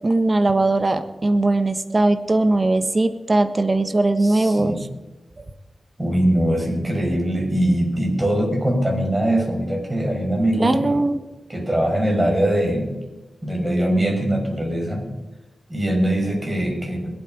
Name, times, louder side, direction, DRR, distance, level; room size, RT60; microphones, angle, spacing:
voice 1, 0.0-4.7 10.6-11.2, right 2 dB, 35° right, 9 dB, 1.3 m, -19 dB
voice 2, 4.2-4.8 6.0-11.0 11.5-12.9 13.4-15.1 15.7-17.1, right 1 dB, 20° right, 0 dB, 5.7 m, -22 dB
21.5 x 8.6 x 5.1 m, 1.1 s
cardioid pair, 65°, 0 cm